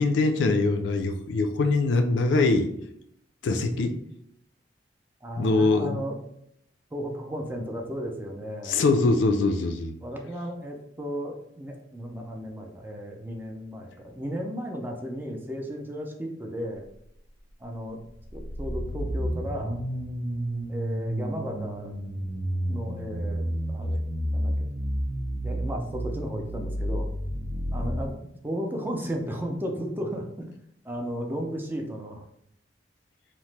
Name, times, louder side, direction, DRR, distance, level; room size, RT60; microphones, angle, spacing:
voice 1, 0.0-2.7 3.4-4.0 5.4-6.0 8.6-9.9, left 3 dB, 75° left, 6 dB, 0.3 m, -23 dB
voice 2, 5.2-6.2 6.9-8.8 10.0-16.8 17.6-18.0 18.3-19.8 20.7-21.9 22.7-24.0 24.3-24.7 25.4-27.1 27.7-28.2 28.4-30.5 30.8-32.2, equal, 10° right, 1 dB, 0.4 m, -34 dB
sound 1, 18.2-28.0, equal, 90° right, 0.6 m, -30 dB
2.9 x 2.0 x 3.2 m, 0.74 s
head